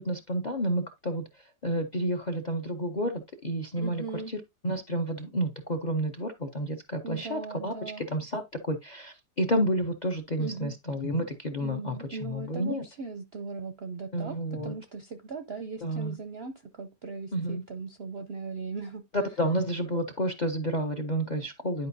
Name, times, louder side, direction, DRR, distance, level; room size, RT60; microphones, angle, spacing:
voice 1, 0.0-12.8 14.1-14.7 15.8-16.2 17.3-17.6 19.1-21.9, equal, 40° left, 0.6 m, -30 dB
voice 2, 3.8-4.3 7.0-8.1 10.4-10.7 11.6-14.4 14.6-19.0, right 4 dB, 60° right, 0.7 m, -38 dB
10.5 x 5.1 x 2.7 m
omnidirectional pair, 1.8 m